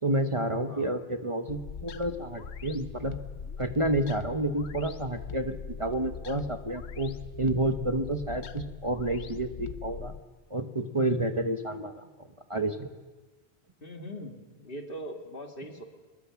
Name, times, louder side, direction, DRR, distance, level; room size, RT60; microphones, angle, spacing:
voice 1, 0.0-3.2 3.6-10.1 10.5-12.1 12.5-12.9, right 1 dB, 30° right, 6 dB, 1.2 m, -30 dB
voice 2, 0.7-1.0 13.8-15.8, equal, 55° left, 3 dB, 2.6 m, -41 dB
sound 1, 1.5-10.2, left 6 dB, 85° left, 1.2 m, -41 dB
25.5 x 20.5 x 7.1 m, 1.3 s
omnidirectional pair, 1.1 m